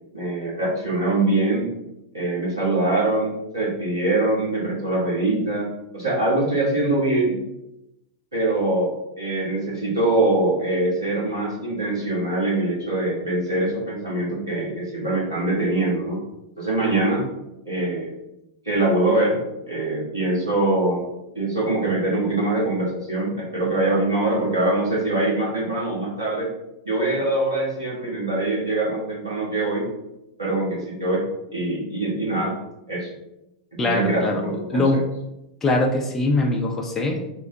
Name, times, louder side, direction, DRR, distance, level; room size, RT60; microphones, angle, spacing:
voice 1, 0.1-1.7 2.1-7.4 8.3-16.2 16.6-17.2 17.7-18.1 18.6-19.4 19.7-21.0 21.3-26.5 26.8-29.8 30.4-31.2 31.5-32.5 32.9-33.1 33.8-35.0, right 2 dB, 90° right, -6 dB, 1.4 m, -23 dB
voice 2, 33.8-34.4 34.7-35.0 35.6-37.3, left 2 dB, 20° left, 1 dB, 0.5 m, -22 dB
3.7 x 2.1 x 3.7 m, 0.88 s
figure-of-eight pair, 95°, 2 cm